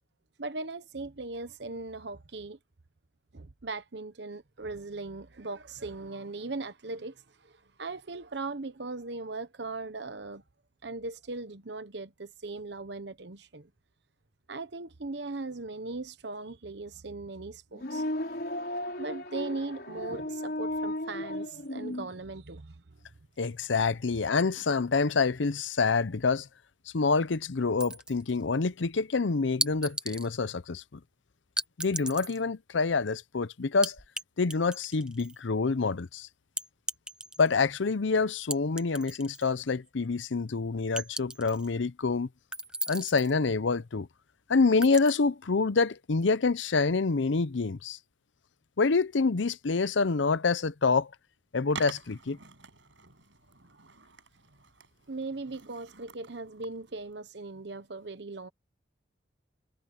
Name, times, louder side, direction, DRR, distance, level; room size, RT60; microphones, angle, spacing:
voice 1, 0.4-2.6 3.3-10.4 10.8-13.7 14.5-18.0 19.0-22.8 55.1-58.5, right 3 dB, 65° right, 1.0 m, -39 dB
sound 1, 17.7-22.1, left 1 dB, 55° left, 4.2 m, -35 dB
voice 2, 23.4-26.5 26.9-31.0 31.8-34.0 34.4-36.3 37.4-42.3 42.9-44.1 44.5-48.0 48.8-51.1 51.5-52.4, left 4 dB, 80° left, 0.7 m, -27 dB
sound 2, 27.8-28.4 29.6-30.3 31.6-32.4 33.8-34.2 34.5-35.4 36.6-37.6 38.5-39.5 39.9-40.0 41.0-41.7 42.5-43.3 44.8-45.1, right 1 dB, 5° right, 0.8 m, -36 dB
Skateboard, 51.7-57.2, right 5 dB, 85° right, 5.5 m, -48 dB
head